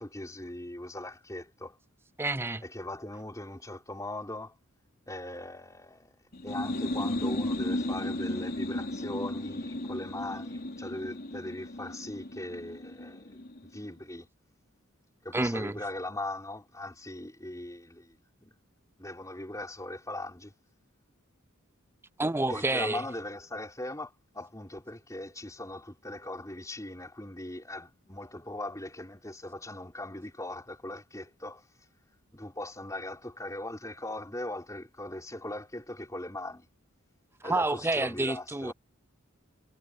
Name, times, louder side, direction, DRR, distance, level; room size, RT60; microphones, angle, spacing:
voice 1, 0.0-1.8 2.6-4.5 5.1-6.2 6.4-13.4 13.7-14.3 15.2-18.5 19.0-20.5 22.5-31.6 32.3-36.7 37.4-38.7, left 1 dB, 15° left, 4.4 m, -40 dB
voice 2, 2.2-2.6 15.3-15.8 22.2-23.0 37.4-38.7, right 2 dB, 10° right, 0.5 m, -29 dB
sound 1, 6.3-13.9, left 1 dB, 45° left, 3.5 m, -34 dB
head